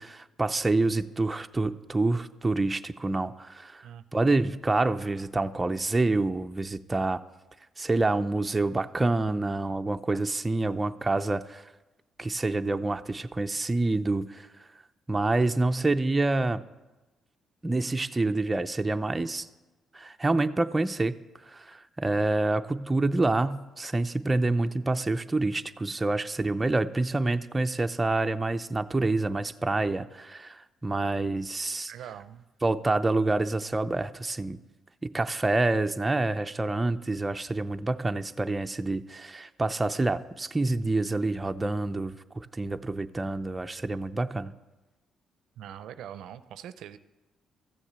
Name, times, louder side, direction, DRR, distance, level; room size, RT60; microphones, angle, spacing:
voice 1, 0.0-3.9 4.1-7.2 7.8-11.7 12.2-14.5 15.1-16.6 17.6-19.5 19.9-21.1 21.5-31.9 32.6-34.6 35.0-44.5, right 2 dB, 20° right, 7 dB, 0.6 m, -27 dB
voice 2, 31.9-32.4 45.6-47.0, right 10 dB, 80° right, 13 dB, 0.5 m, -42 dB
14.0 x 7.2 x 8.0 m, 1.1 s
cardioid pair, 90°, 0 cm